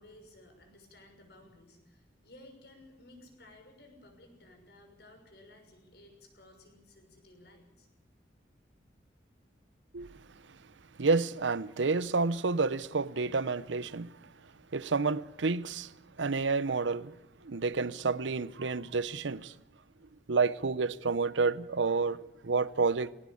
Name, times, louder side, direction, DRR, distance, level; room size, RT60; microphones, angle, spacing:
voice 1, 0.0-7.9, left 1 dB, 60° left, 6.4 m, -56 dB
voice 2, 11.0-14.1 14.7-15.9 16.2-17.2 17.4-19.5 20.3-22.2 22.4-23.1, right 4 dB, 90° right, 0.7 m, -29 dB
19.0 x 18.0 x 8.6 m
head